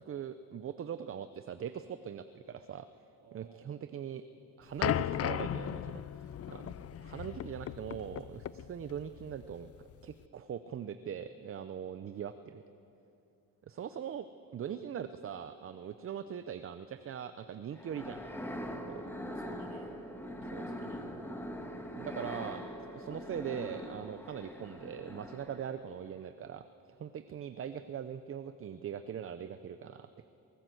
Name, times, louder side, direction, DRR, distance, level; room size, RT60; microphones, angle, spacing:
voice 1, 0.1-2.9 3.3-4.2 4.6-6.7 7.0-9.7 10.0-12.6 13.7-18.2 18.9-19.0 20.5-20.6 21.9-22.6 22.9-26.7 27.0-30.3, right 8 dB, 35° right, 11 dB, 0.6 m, -41 dB
voice 2, 3.2-3.8 14.7-14.8 19.3-21.5, right 4 dB, 80° right, 1 dB, 3.3 m, -56 dB
sound 1, 4.8-10.2, left 10 dB, 40° left, 0.5 m, -36 dB
sound 2, 17.8-25.8, equal, 5° left, 1.6 m, -42 dB
22.5 x 18.5 x 7.8 m, 2.8 s
cardioid pair, 150°, 36 cm